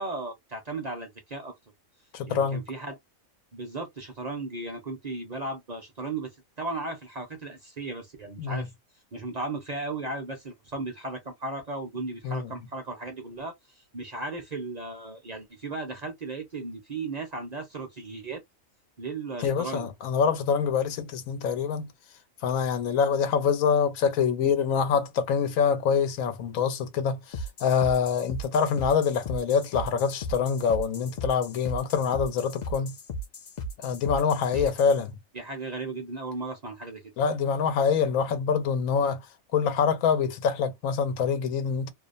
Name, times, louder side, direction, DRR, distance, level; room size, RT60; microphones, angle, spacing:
voice 1, 0.0-1.5 2.3-3.0 3.5-6.3 6.6-8.7 9.1-18.4 19.0-19.9 34.5-34.7 35.3-37.0, right 3 dB, 40° right, 0.6 m, -36 dB
voice 2, 2.1-2.6 8.4-8.7 12.2-12.5 19.4-21.9 22.4-33.0 33.8-35.2 37.2-39.3 39.5-41.9, left 6 dB, 90° left, 1.1 m, -25 dB
sound 1, 27.3-35.0, equal, 55° left, 0.5 m, -36 dB
2.7 x 2.0 x 2.4 m
omnidirectional pair, 1.4 m